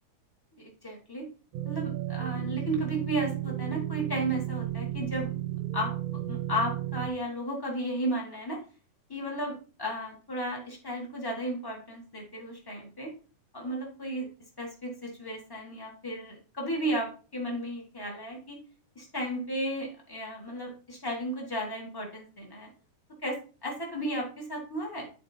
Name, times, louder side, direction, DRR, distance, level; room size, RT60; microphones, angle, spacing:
voice 1, 0.6-1.3 1.6-5.3 5.7-5.9 6.3-8.6 9.1-13.1 13.5-14.3 14.6-18.6 18.9-22.7 23.2-25.0, right 1 dB, 25° left, -2 dB, 0.5 m, -34 dB
sound 1, 1.5-7.1, right 14 dB, 75° right, 1.5 m, -33 dB
11.5 x 4.4 x 2.7 m, 0.37 s
omnidirectional pair, 3.6 m